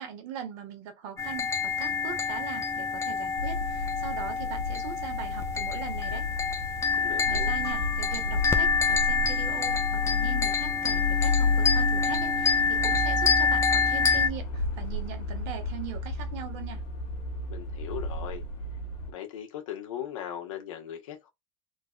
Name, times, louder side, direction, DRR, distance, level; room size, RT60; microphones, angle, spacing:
voice 1, 0.0-6.3 7.3-16.8, right 9 dB, 65° right, 1.4 m, -40 dB
sound 1, 1.2-14.3, left 5 dB, 15° left, 0.7 m, -27 dB
sound 2, 3.4-19.1, left 2 dB, 50° left, 1.6 m, -32 dB
voice 2, 6.9-7.5 17.5-18.4 19.1-21.3, left 10 dB, 85° left, 1.4 m, -38 dB
3.8 x 2.4 x 2.3 m
supercardioid pair, 125°, 17 cm